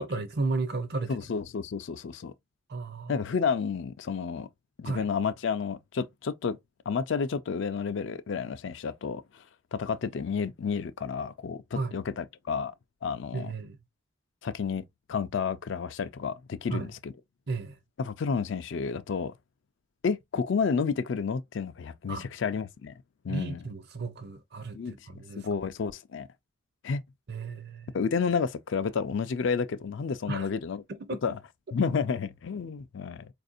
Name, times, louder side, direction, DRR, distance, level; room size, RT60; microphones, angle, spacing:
voice 1, 0.0-1.2 2.7-3.2 4.8-5.0 11.7-11.9 13.3-13.8 16.7-16.9 17.5-17.8 22.1-22.2 23.3-25.5 27.3-28.0 30.3-30.5 30.9-31.2, right 3 dB, 50° right, 0.6 m, -34 dB
voice 2, 1.1-2.3 3.1-4.5 4.8-6.6 6.9-9.4 9.7-12.7 13.0-13.5 14.4-14.8 15.1-17.1 18.0-19.3 20.0-22.9 23.2-23.6 24.7-26.3 26.8-27.0 27.9-30.8 31.2-31.4 31.7-33.3, left 5 dB, 60° left, 0.4 m, -31 dB
4.2 x 2.5 x 2.5 m
head